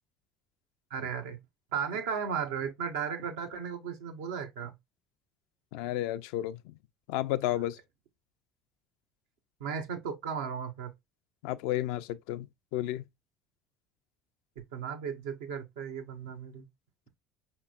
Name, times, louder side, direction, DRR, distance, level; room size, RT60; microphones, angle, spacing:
voice 1, 0.9-1.4 1.7-4.7 9.6-10.9 14.6-16.7, right 7 dB, 80° right, 0.7 m, -35 dB
voice 2, 5.7-6.7 7.1-7.8 11.4-12.5 12.7-13.0, left 14 dB, 75° left, 0.3 m, -32 dB
5.2 x 2.9 x 2.3 m
hypercardioid pair, 70°, 0 cm